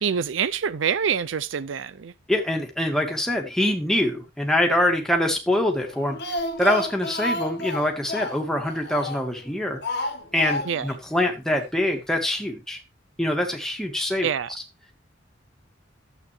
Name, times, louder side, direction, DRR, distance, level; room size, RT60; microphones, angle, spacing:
voice 1, 0.0-2.1 10.7-10.9 14.2-14.5, right 7 dB, 75° right, 0.5 m, -26 dB
voice 2, 2.3-9.8 10.3-12.8 13.2-14.3, left 1 dB, ahead, 1.8 m, -24 dB
Speech, 5.9-9.4 9.8-11.0 11.2-11.3 11.6-11.7, left 1 dB, 60° left, 1.4 m, -31 dB
12.0 x 8.0 x 3.2 m
head